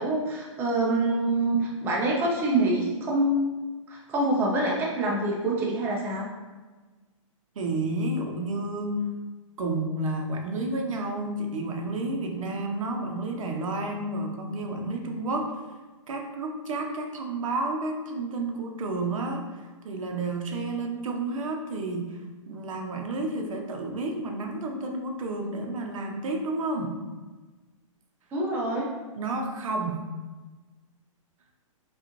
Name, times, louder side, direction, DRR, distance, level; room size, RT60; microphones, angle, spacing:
voice 1, 0.0-3.4 3.9-6.3 28.3-28.9, right 2 dB, 10° right, -3 dB, 0.5 m, -26 dB
voice 2, 7.6-8.9 9.6-15.6 16.1-27.0 29.2-30.0, right 2 dB, 75° right, 3 dB, 0.8 m, -31 dB
5.1 x 2.4 x 3.0 m, 1.3 s
hypercardioid pair, 155°, 17 cm